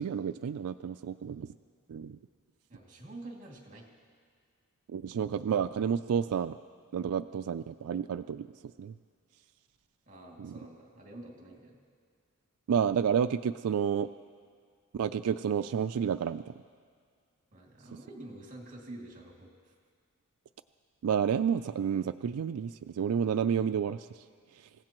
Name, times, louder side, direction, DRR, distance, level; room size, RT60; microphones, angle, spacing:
voice 1, 0.0-1.5 1.9-2.2 4.9-6.6 6.9-8.5 8.8-8.9 10.4-10.5 12.7-14.1 14.9-16.5 21.0-24.2 24.5-24.7, right 7 dB, 85° right, 10 dB, 0.4 m, -30 dB
voice 2, 2.7-3.9 10.1-11.8 17.5-19.7, right 1 dB, 35° right, -1 dB, 2.5 m, -47 dB
27.5 x 16.5 x 3.0 m, 2.1 s
head